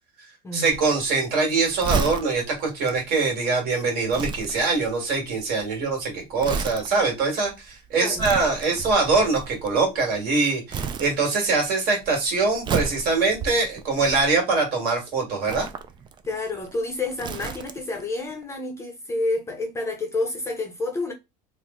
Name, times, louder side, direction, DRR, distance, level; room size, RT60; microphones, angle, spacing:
voice 1, 0.5-15.7, right 3 dB, 50° right, 1.7 m, -23 dB
Crumpling crinkling, 0.6-10.3 10.7-11.7 11.9-14.7 15.4-18.0 18.3-18.4, right 5 dB, 25° right, 0.3 m, -33 dB
voice 2, 16.2-21.1, left 2 dB, 15° left, 0.7 m, -29 dB
3.1 x 2.1 x 3.7 m
cardioid pair, 140°, 20 cm